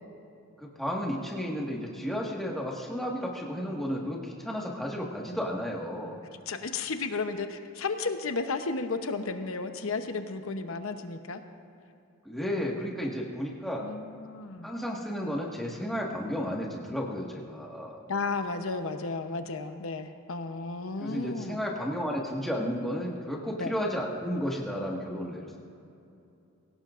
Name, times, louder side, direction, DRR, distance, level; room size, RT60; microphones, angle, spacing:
voice 1, 0.6-6.2 12.2-13.9 14.6-18.0 21.0-25.5, equal, ahead, -3 dB, 1.7 m, -33 dB
voice 2, 6.5-11.4 13.8-14.7 18.1-21.6 23.6-23.7, left 3 dB, 70° left, 7 dB, 0.9 m, -33 dB
22.0 x 17.5 x 2.5 m, 2.7 s
head